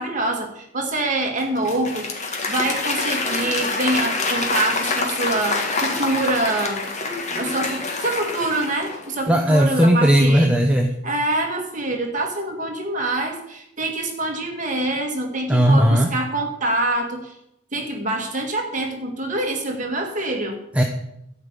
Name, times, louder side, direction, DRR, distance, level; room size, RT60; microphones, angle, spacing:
voice 1, 0.0-6.9 7.4-10.6 11.0-17.3 17.7-20.6, right 2 dB, 40° right, 2 dB, 2.1 m, -25 dB
Applause / Crowd, 1.4-9.2, left 3 dB, 35° left, 1.8 m, -26 dB
voice 2, 9.3-11.0 15.5-16.1 20.7-20.8, equal, 5° right, 2 dB, 0.9 m, -16 dB
12.5 x 5.5 x 8.2 m, 0.78 s
head